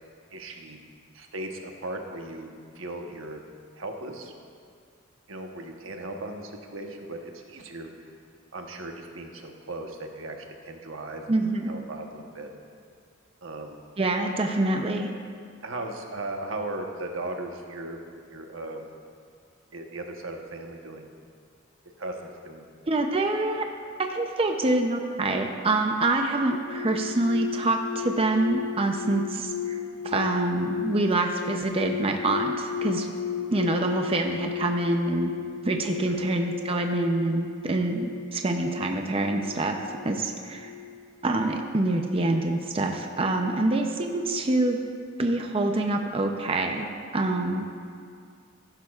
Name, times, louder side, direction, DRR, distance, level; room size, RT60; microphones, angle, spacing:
voice 1, 0.3-0.8 1.1-3.4 3.8-4.3 5.3-7.9 8.5-11.2 11.6-12.5 13.4-13.8 15.6-18.0 18.3-18.9 19.7-21.1 22.0-22.7 36.1-36.3, right 2 dB, 90° right, 3 dB, 1.1 m, -37 dB
voice 2, 11.3-11.8 14.0-15.1 22.9-23.7 24.0-33.1 33.5-35.3 35.6-39.8 40.0-40.7 41.2-44.8 45.2-47.6, right 2 dB, 30° right, 4 dB, 0.6 m, -26 dB
sound 1, 26.5-43.8 44.1-44.5, left 9 dB, 75° left, 0.3 m, -36 dB
14.5 x 11.5 x 2.4 m, 2.2 s
head